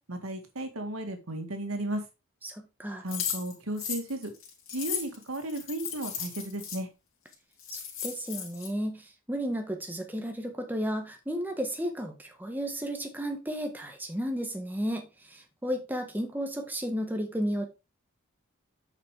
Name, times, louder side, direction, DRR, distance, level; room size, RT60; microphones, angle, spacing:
voice 1, 0.1-2.0 3.0-4.3 4.7-6.9, right 1 dB, 90° right, 6 dB, 2.1 m, -34 dB
voice 2, 2.4-3.0 7.7-17.7, equal, 10° right, 3 dB, 1.4 m, -33 dB
sound 1, 3.1-6.8 7.3-7.4 7.6-8.7, left 8 dB, 70° left, 3.3 m, -36 dB
8.3 x 6.0 x 3.4 m, 0.26 s
head